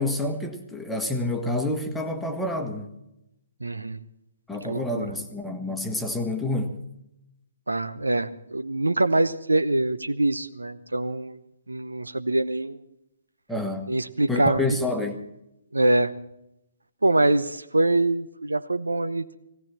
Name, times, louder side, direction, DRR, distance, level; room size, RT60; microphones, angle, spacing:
voice 1, 0.0-2.9 4.5-6.8 13.5-13.9 14.3-15.2, left 2 dB, 5° left, 4 dB, 1.5 m, -28 dB
voice 2, 3.6-4.0 4.6-5.1 7.7-11.4 11.7-12.8 13.9-14.7 15.7-16.1 17.0-19.4, right 2 dB, 75° right, 12 dB, 0.8 m, -24 dB
18.0 x 17.5 x 4.3 m, 0.83 s
figure-of-eight pair, 130°, 0 cm